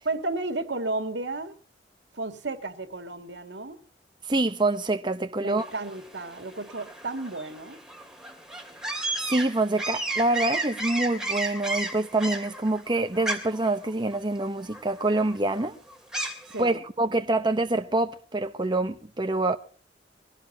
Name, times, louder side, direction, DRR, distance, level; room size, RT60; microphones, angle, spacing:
voice 1, 0.0-1.5 2.1-3.8 5.4-7.8 16.5-16.8, right 2 dB, 85° right, 2.3 m, -33 dB
voice 2, 4.3-5.6 9.3-15.7 16.6-19.6, right 2 dB, 25° right, 0.9 m, -26 dB
sound 1, 5.6-16.6, right 2 dB, 5° right, 2.7 m, -34 dB
23.0 x 16.5 x 2.9 m
head